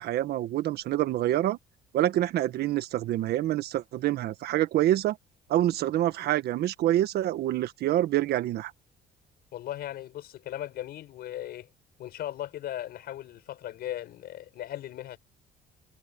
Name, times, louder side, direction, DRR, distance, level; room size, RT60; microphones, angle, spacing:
voice 1, 0.0-1.6 1.9-5.2 5.5-8.7, right 13 dB, 70° right, 1.5 m, -26 dB
voice 2, 9.5-11.7 12.0-15.2, left 12 dB, 70° left, 6.0 m, -37 dB
cardioid pair, 110°, 17 cm